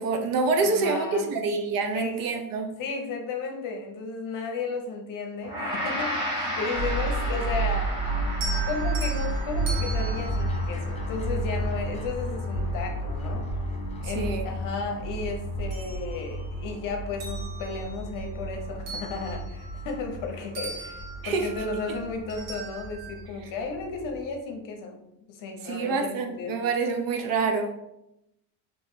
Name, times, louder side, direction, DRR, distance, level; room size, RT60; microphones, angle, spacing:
voice 1, 0.0-2.7 14.0-14.5 21.2-21.5 25.6-27.7, right 4 dB, 55° right, 5 dB, 0.6 m, -26 dB
voice 2, 0.6-1.3 1.9-2.2 2.8-8.2 8.6-13.5 14.0-26.6, left 4 dB, 50° left, 3 dB, 0.8 m, -34 dB
Gong, 5.4-14.8, equal, 10° right, 1.5 m, -35 dB
sound 1, 6.8-24.3, right 1 dB, 20° left, 0.3 m, -32 dB
sound 2, 8.3-11.6 13.3-13.4 13.9-15.1 15.4-16.7 17.1-20.3 20.5-23.2, right 3 dB, 85° right, 1.0 m, -40 dB
3.0 x 3.0 x 3.6 m, 0.84 s
cardioid pair, 140°, 42 cm